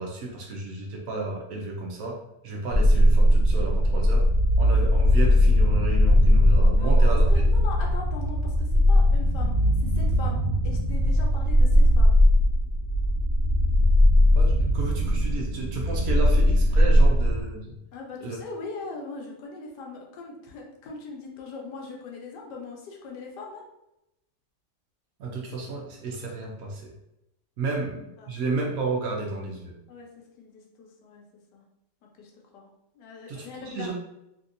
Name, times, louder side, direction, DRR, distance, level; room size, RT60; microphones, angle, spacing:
voice 1, 0.0-2.2 2.4-4.2 4.6-7.3 14.4-17.7 18.2-18.4 25.2-26.9 27.6-29.7 33.3-33.9, right 3 dB, 65° right, -1 dB, 1.0 m, -32 dB
sound 1, 2.7-17.4, equal, 65° left, 0.6 m, -19 dB
voice 2, 6.7-12.2 17.9-23.6 27.6-27.9 28.2-28.3 29.9-31.2 31.5-31.6 32.2-33.9, left 3 dB, 85° left, 0 dB, 1.3 m, -40 dB
3.2 x 2.7 x 2.5 m, 0.87 s
omnidirectional pair, 1.8 m